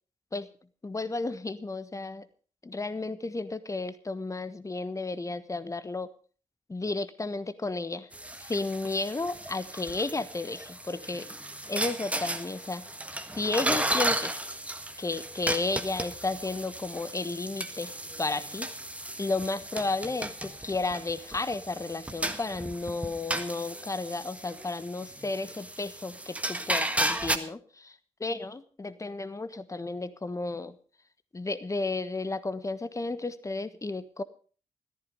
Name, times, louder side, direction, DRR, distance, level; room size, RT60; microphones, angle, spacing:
voice 1, 0.8-2.3 2.6-6.1 6.7-8.1 8.4-11.3 11.7-12.8 13.3-14.4 15.0-17.9 18.2-18.7 19.2-30.8 31.3-34.2, left 3 dB, 20° left, 14 dB, 1.3 m, -33 dB
sound 1, 8.1-27.4, right 1 dB, 10° right, 1.5 m, -34 dB
14.5 x 14.0 x 5.2 m, 0.41 s
figure-of-eight pair, 40°, 17 cm